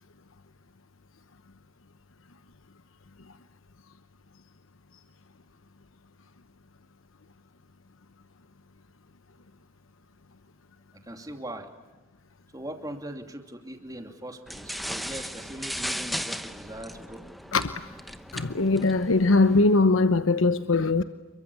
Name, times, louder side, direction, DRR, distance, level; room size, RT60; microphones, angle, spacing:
voice 1, 11.0-11.7 12.5-17.2, right 1 dB, 20° right, 2.8 m, -40 dB
sound 1, 14.5-19.7, equal, ahead, 0.9 m, -37 dB
voice 2, 17.5-17.8 18.3-21.0, left 3 dB, 90° left, 1.0 m, -21 dB
29.0 x 23.5 x 8.6 m
head